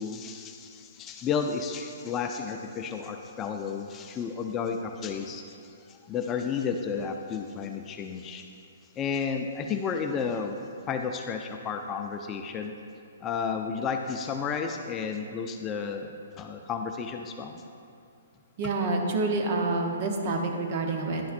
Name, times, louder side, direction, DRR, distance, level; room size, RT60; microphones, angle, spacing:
voice 1, 0.0-5.6 5.9-8.4 9.0-10.6 10.9-12.7 13.2-16.1 16.4-17.6, left 6 dB, 25° left, 4 dB, 0.4 m, -32 dB
voice 2, 18.6-21.3, right 3 dB, 45° right, 2 dB, 0.9 m, -28 dB
10.0 x 5.7 x 2.5 m, 2.4 s
hypercardioid pair, 140°, 0 cm